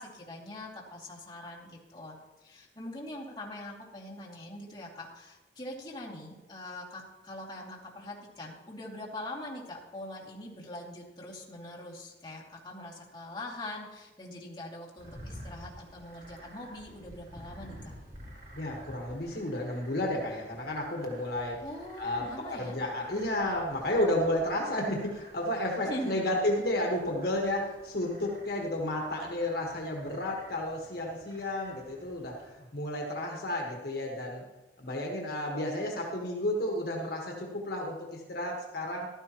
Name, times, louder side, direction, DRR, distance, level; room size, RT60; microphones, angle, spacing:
voice 1, 0.0-17.9 21.6-22.8 25.8-26.3, left 1 dB, 25° left, -4 dB, 2.6 m, -43 dB
sound 1, 15.0-32.5, right 1 dB, 60° right, 3.5 m, -51 dB
voice 2, 18.5-21.6 22.0-34.4 34.8-39.1, left 1 dB, 60° left, 0 dB, 1.6 m, -32 dB
14.5 x 12.5 x 3.1 m, 1.1 s
head